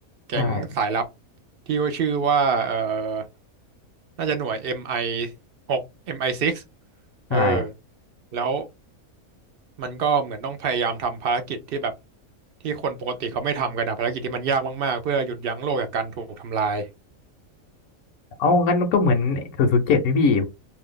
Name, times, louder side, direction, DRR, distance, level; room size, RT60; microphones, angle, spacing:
voice 1, 0.3-1.0 1.7-3.2 4.2-5.3 5.7-5.8 6.1-6.6 7.3-7.7 8.3-8.7 9.8-11.9 12.6-16.9, right 5 dB, 70° right, 0.5 m, -25 dB
voice 2, 7.3-7.6 18.4-20.5, left 3 dB, 75° left, 1.0 m, -20 dB
2.6 x 2.3 x 3.6 m
omnidirectional pair, 1.5 m